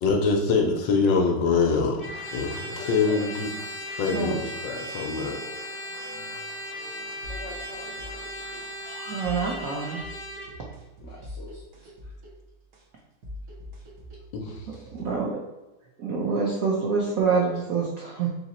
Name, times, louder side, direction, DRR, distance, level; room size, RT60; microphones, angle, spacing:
voice 1, 0.0-2.0 2.3-3.5 3.8-5.4 14.3-14.6, left 4 dB, 70° left, 1 dB, 1.2 m, -24 dB
Trumpet, 2.0-10.5, equal, 50° left, 1.2 m, -37 dB
Applause, 2.0-10.0, equal, 5° right, 0.9 m, -47 dB
voice 2, 2.7-3.3 7.3-9.1 11.0-12.2 14.9-15.0, left 3 dB, 85° left, -3 dB, 0.6 m, -44 dB
sound 1, 7.2-15.2, left 1 dB, 55° right, 1.3 m, -44 dB
voice 3, 9.1-10.0 14.9-15.4 16.0-18.3, right 5 dB, 85° right, -2 dB, 0.7 m, -26 dB
4.1 x 2.9 x 4.1 m, 1.1 s
omnidirectional pair, 2.4 m